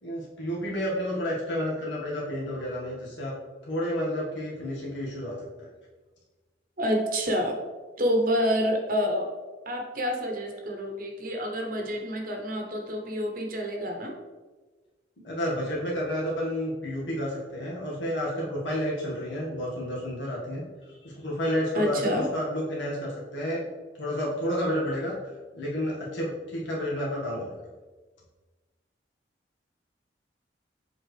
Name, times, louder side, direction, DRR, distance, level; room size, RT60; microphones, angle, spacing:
voice 1, 0.0-3.3 3.6-5.7 15.2-20.6 20.9-23.6 24.0-25.1 25.5-27.5, equal, 80° left, -5 dB, 1.7 m, -30 dB
voice 2, 6.8-7.6 8.0-9.3 9.7-14.1 21.7-22.3, equal, 50° right, 1 dB, 0.9 m, -28 dB
7.4 x 4.3 x 3.3 m, 1.3 s
head